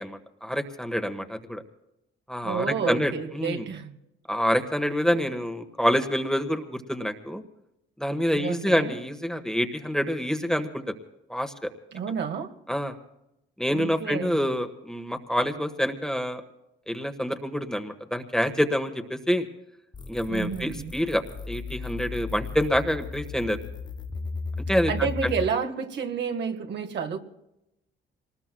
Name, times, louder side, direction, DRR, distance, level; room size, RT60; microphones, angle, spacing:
voice 1, 0.0-1.6 2.3-3.7 4.3-7.4 8.0-10.9 11.3-11.7 12.7-13.0 13.6-16.4 16.9-19.5 20.1-23.6 24.7-25.3, equal, 5° left, 6 dB, 1.4 m, -27 dB
voice 2, 2.4-4.0 8.3-9.0 11.9-12.5 13.7-14.4 20.3-20.9 24.9-27.2, right 6 dB, 60° right, 5 dB, 1.6 m, -30 dB
sound 1, 19.9-25.5, left 4 dB, 20° left, 0.8 m, -35 dB
26.0 x 20.0 x 2.3 m, 0.86 s
cardioid pair, 90°, 20 cm